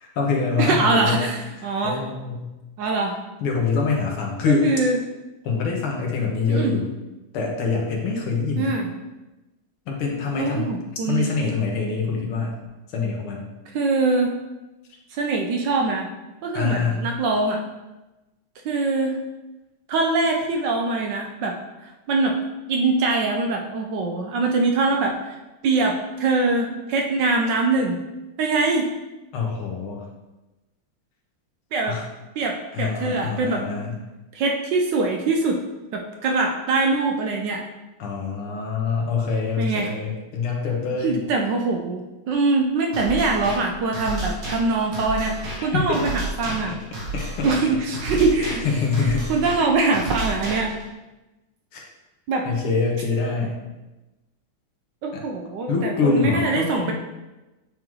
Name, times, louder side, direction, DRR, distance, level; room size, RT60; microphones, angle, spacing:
voice 1, 0.0-1.3 1.8-2.5 3.4-4.7 5.4-6.9 7.3-8.7 9.9-10.8 11.1-12.5 12.9-13.5 16.5-17.0 29.3-30.0 31.9-32.0 32.7-34.0 38.0-41.2 45.6-46.0 47.1-47.5 48.4-49.3 51.7-51.8 52.5-53.6 55.1-55.2 55.7-56.9, left 4 dB, 85° left, 0 dB, 2.0 m, -25 dB
voice 2, 0.6-2.0 2.8-3.2 4.5-5.0 6.5-6.7 8.6-8.9 10.4-11.3 13.7-14.4 15.1-16.1 16.4-17.6 18.6-19.2 19.9-21.6 21.8-22.3 22.7-25.4 25.6-28.0 28.4-28.9 31.7-32.0 32.4-33.6 34.3-35.6 35.9-37.6 39.6-39.9 41.0-46.8 47.4-48.6 49.0-50.7 52.3-52.5 55.0-56.9, right 3 dB, 70° right, 2 dB, 1.1 m, -23 dB
sound 1, 42.9-50.9, right 2 dB, 50° right, 1.4 m, -32 dB
8.8 x 3.7 x 3.1 m, 1.1 s
omnidirectional pair, 2.3 m